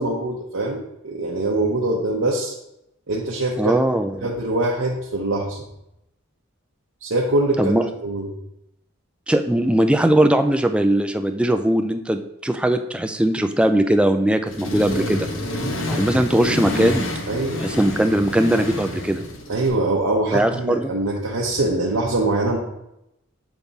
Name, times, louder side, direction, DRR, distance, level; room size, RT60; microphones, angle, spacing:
voice 1, 0.0-2.5 3.1-3.8 4.2-5.6 7.0-7.7 8.0-8.3 17.3-17.7 19.5-22.6, right 2 dB, 85° right, -3 dB, 0.8 m, -23 dB
voice 2, 3.6-4.3 7.6-7.8 9.3-15.3 15.9-17.1 17.6-19.2 20.3-20.9, right 1 dB, 5° right, 7 dB, 0.3 m, -20 dB
Accelerating revving vroom, 14.5-19.7, left 1 dB, 65° left, 0.9 m, -28 dB
7.1 x 3.6 x 4.0 m, 0.84 s
head